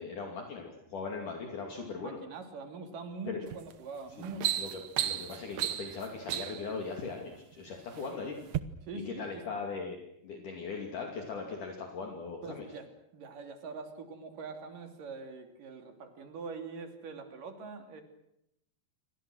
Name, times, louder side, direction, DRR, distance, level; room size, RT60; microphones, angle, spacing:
voice 1, 0.0-2.2 3.3-3.4 4.6-4.7 5.0-8.4 8.9-10.0 10.2-12.7, left 4 dB, 55° left, 2 dB, 3.9 m, -39 dB
voice 2, 1.8-4.8 8.9-9.6 12.4-18.0, right 4 dB, 55° right, 6 dB, 4.3 m, -43 dB
sound 1, 3.5-3.7 4.1-6.7 7.5-8.1 8.5-8.6, right 11 dB, 75° right, 1.5 m, -33 dB
28.5 x 24.5 x 6.4 m, 0.80 s
omnidirectional pair, 4.7 m